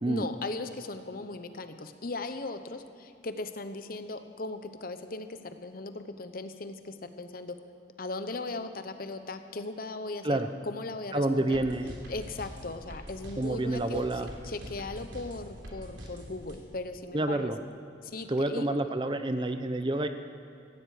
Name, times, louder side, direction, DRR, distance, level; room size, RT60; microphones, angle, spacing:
voice 1, 0.1-7.6 8.0-10.4 10.6-11.6 12.1-14.0 14.4-17.5 18.0-18.7, left 2 dB, 50° left, 9 dB, 0.8 m, -38 dB
voice 2, 11.1-11.9 13.4-14.3 17.1-17.6 18.3-20.1, right 1 dB, 25° right, 8 dB, 0.6 m, -28 dB
sound 1, 11.5-16.6, equal, 80° right, 3.4 m, -44 dB
17.0 x 15.0 x 4.9 m, 2.7 s
head